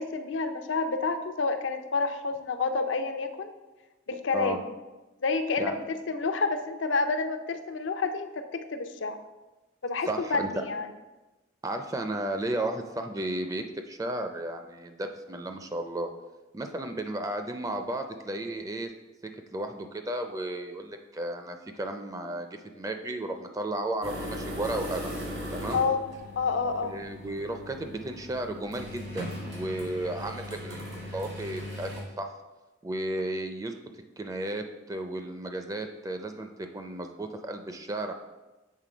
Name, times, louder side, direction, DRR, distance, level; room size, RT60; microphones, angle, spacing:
voice 1, 0.0-3.5 4.1-4.6 5.2-9.2 9.8-10.9 25.7-26.0 26.4-26.9, left 4 dB, 80° left, 8 dB, 0.6 m, -29 dB
voice 2, 10.0-10.5 11.6-16.1 16.5-18.9 19.5-25.1 25.5-25.8 26.8-30.8 31.1-32.3 32.8-33.8 34.2-38.1, right 1 dB, 20° right, 6 dB, 0.4 m, -34 dB
sound 1, 24.0-32.0, equal, 80° right, 2.1 m, -38 dB
7.5 x 3.7 x 5.0 m, 1.1 s
head